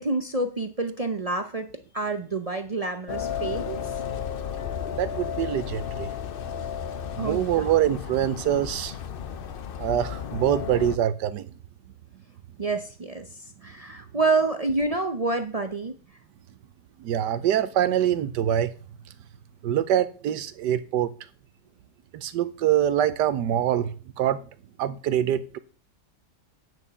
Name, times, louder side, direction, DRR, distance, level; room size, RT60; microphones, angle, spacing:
voice 1, 0.0-1.7 1.9-3.8 7.2-7.7 12.6-13.2 13.6-15.9, right 3 dB, 55° right, 0.4 m, -27 dB
sound 1, 3.1-11.0, left 8 dB, 80° left, 0.5 m, -33 dB
voice 2, 5.0-6.1 7.1-9.0 9.8-11.5 17.0-18.7 19.6-21.1 22.1-24.4 24.8-25.6, right 10 dB, 80° right, 1.4 m, -24 dB
9.1 x 6.3 x 6.9 m
omnidirectional pair, 1.8 m